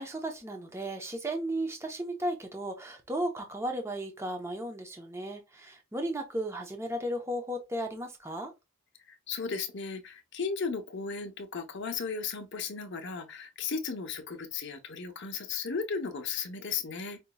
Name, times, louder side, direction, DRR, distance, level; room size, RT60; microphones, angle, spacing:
voice 1, 0.0-8.5, right 1 dB, 15° right, 0.7 m, -35 dB
voice 2, 9.1-17.2, left 5 dB, 55° left, 0.8 m, -35 dB
5.3 x 2.9 x 2.3 m
head